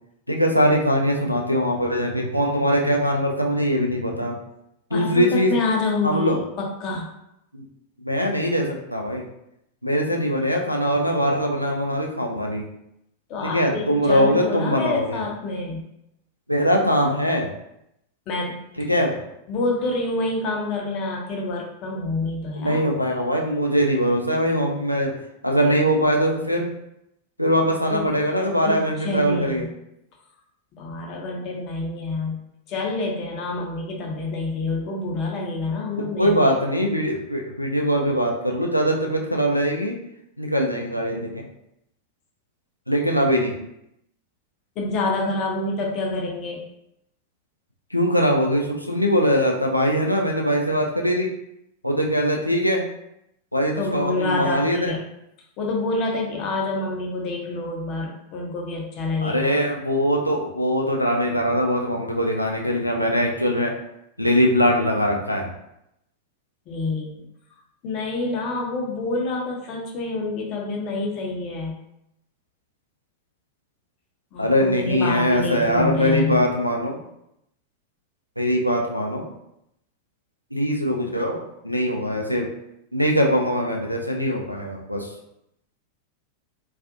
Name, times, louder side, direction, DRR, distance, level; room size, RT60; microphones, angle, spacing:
voice 1, 0.3-4.4 4.9-5.5 6.0-6.4 7.5-7.6 8.0-9.2 9.8-12.6 13.4-15.2 16.5-17.5 18.8-19.2 22.6-25.2 25.4-26.7 27.4-29.7 36.0-39.9 40.4-41.5 42.9-43.6 47.9-51.3 51.8-52.8 53.5-55.0 59.2-63.7 64.2-65.5 74.4-77.0 78.4-79.2 80.5-82.5 82.9-85.1, equal, 90° left, 0 dB, 0.4 m, -22 dB
voice 2, 4.9-7.1 13.3-15.8 18.3-18.6 19.5-22.8 27.9-28.1 28.6-29.7 30.7-32.4 32.7-36.5 36.8-36.9 44.8-46.7 53.7-55.0 55.6-59.6 66.7-67.2 67.8-71.7 74.3-76.4, left 3 dB, 40° left, 0 dB, 0.6 m, -27 dB
2.4 x 2.3 x 2.5 m, 0.81 s
figure-of-eight pair, 90°, 0 cm